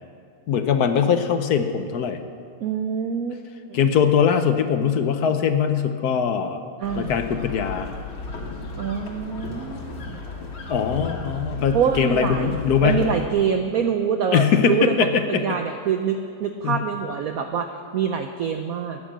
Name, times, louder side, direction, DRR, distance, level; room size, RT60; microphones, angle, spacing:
voice 1, 0.5-2.2 3.7-6.6 7.0-7.9 10.7-13.0 14.3-15.4 16.6-16.8, left 7 dB, 60° left, 8 dB, 1.1 m, -21 dB
voice 2, 2.6-3.4 3.7-3.8 6.8-7.2 8.8-10.3 11.7-12.6 12.8-19.0, right 7 dB, 65° right, 6 dB, 0.9 m, -25 dB
sound 1, 6.8-13.3, left 3 dB, 85° left, 2.5 m, -34 dB
15.0 x 10.0 x 7.4 m, 2.2 s
omnidirectional pair, 2.2 m